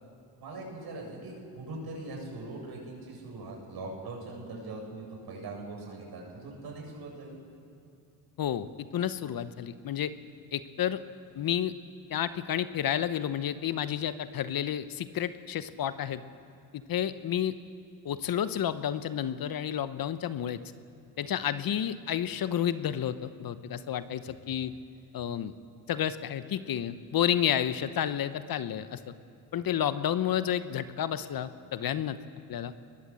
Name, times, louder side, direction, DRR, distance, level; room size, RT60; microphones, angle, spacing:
voice 1, 0.4-7.4 24.2-24.3, right 2 dB, 65° right, 0 dB, 7.6 m, -41 dB
voice 2, 8.4-10.1 10.5-11.0 11.3-11.7 12.1-16.2 16.9-17.6 18.0-20.6 21.2-24.7 25.1-25.5 25.9-29.1 29.5-32.2 32.5-32.7, left 10 dB, 55° left, 13 dB, 1.0 m, -30 dB
21.5 x 21.0 x 7.8 m, 2.6 s
supercardioid pair, 65°, 41 cm